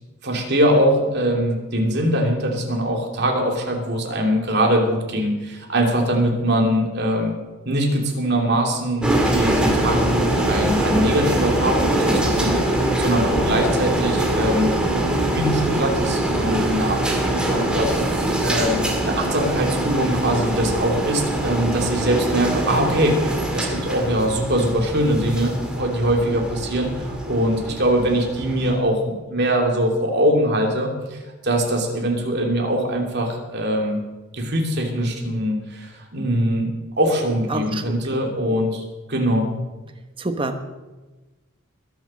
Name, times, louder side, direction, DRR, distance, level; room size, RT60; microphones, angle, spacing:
voice 1, 0.2-7.4 7.6-17.9 18.4-34.0 34.3-36.7 37.0-39.5, equal, 50° right, 1 dB, 2.9 m, -22 dB
sound 1, 9.0-28.7, right 1 dB, 5° right, 2.0 m, -23 dB
voice 2, 37.5-37.8 38.1-38.2 40.2-40.6, right 2 dB, 25° right, 7 dB, 1.1 m, -26 dB
21.5 x 7.4 x 6.4 m, 1.2 s
head